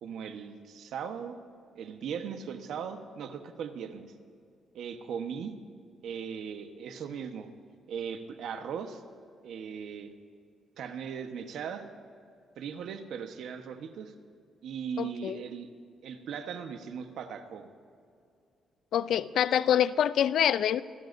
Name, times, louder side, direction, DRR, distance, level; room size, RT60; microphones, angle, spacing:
voice 1, 0.0-1.4 1.7-4.1 4.7-5.5 6.0-7.5 7.9-9.0 9.4-10.1 10.8-11.9 12.6-14.1 14.6-15.7 16.0-17.7, right 7 dB, 70° right, 7 dB, 1.2 m, -38 dB
voice 2, 15.0-15.4 18.9-20.8, left 10 dB, 65° left, 16 dB, 0.4 m, -25 dB
26.5 x 16.0 x 2.7 m, 2.4 s
cardioid pair, 145°, 0 cm